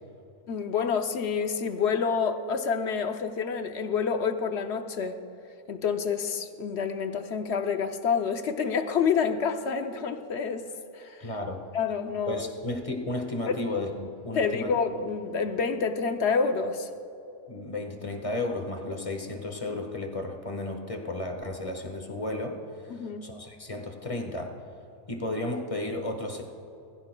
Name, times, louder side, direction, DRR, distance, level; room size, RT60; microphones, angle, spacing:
voice 1, 0.5-5.2 5.7-10.7 10.9-11.2 11.7-12.4 13.5-13.6 14.3-16.9 22.9-23.3, left 6 dB, 60° left, 8 dB, 0.9 m, -28 dB
voice 2, 11.2-11.6 12.3-14.7 17.5-24.5 25.1-26.4, left 2 dB, 25° left, 3 dB, 1.2 m, -33 dB
20.5 x 15.5 x 2.2 m, 2.7 s
omnidirectional pair, 1.4 m